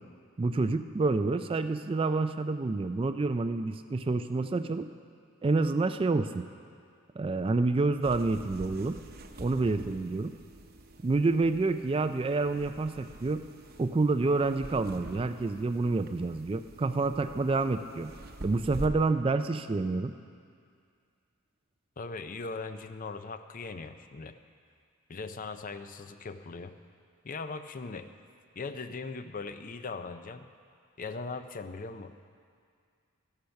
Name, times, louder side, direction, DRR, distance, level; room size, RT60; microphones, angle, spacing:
voice 1, 0.4-4.9 5.4-6.5 7.2-9.0 9.4-10.3 11.0-13.4 13.8-18.1 18.4-20.1, right 3 dB, 25° right, 10 dB, 0.3 m, -28 dB
sound 1, 8.0-18.9, right 1 dB, 45° right, 0.8 m, -46 dB
voice 2, 22.0-24.3 25.1-26.7 27.2-28.1 28.6-30.5 31.0-32.2, left 4 dB, 40° left, 10 dB, 0.5 m, -39 dB
13.5 x 11.5 x 5.8 m, 2.2 s
head